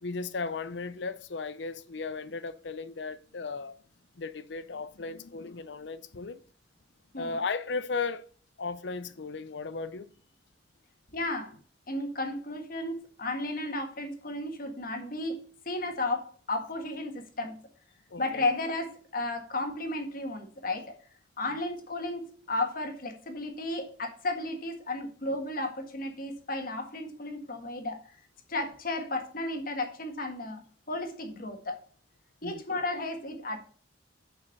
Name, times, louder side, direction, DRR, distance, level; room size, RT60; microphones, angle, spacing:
voice 1, 0.0-3.8 4.2-6.4 7.2-8.2 8.6-10.1 18.1-18.4 21.5-21.6 32.4-32.6, left 4 dB, 70° left, 0.7 m, -36 dB
voice 2, 11.1-11.6 11.9-17.6 18.2-21.0 21.4-28.0 28.5-30.6 30.9-31.8 32.4-33.6, left 2 dB, 50° left, 1.7 m, -33 dB
7.0 x 5.6 x 6.6 m
head